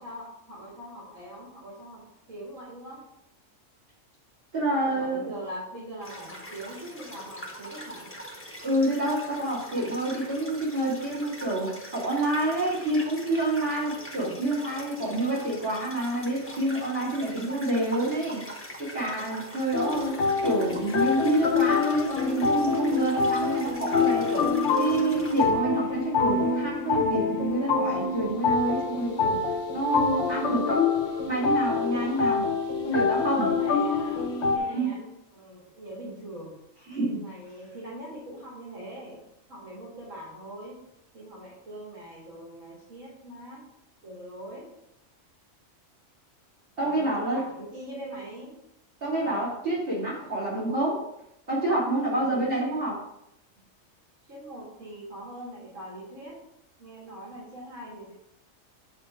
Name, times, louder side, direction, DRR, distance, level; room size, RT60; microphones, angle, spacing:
voice 1, 0.0-2.0 2.3-3.0 4.7-8.1 28.9-29.2 31.9-32.2 33.4-36.6 37.1-40.8 41.1-43.6 44.0-44.7 46.8-48.5 52.1-52.7 54.3-56.4 56.8-58.1, right 1 dB, 70° right, -6 dB, 2.0 m, -42 dB
voice 2, 4.5-5.3 8.6-18.4 18.8-20.1 20.4-24.5 24.8-29.4 29.7-30.8 31.3-32.5 32.8-33.5 34.6-34.9 36.9-37.2 46.8-47.4 49.0-51.0 51.5-53.0, right 1 dB, 45° right, -7 dB, 2.7 m, -28 dB
sound 1, 6.0-25.6, equal, 10° left, 0.9 m, -43 dB
sound 2, 19.7-34.6, left 4 dB, 60° left, 1.0 m, -26 dB
8.0 x 2.8 x 4.8 m, 0.83 s
omnidirectional pair, 1.4 m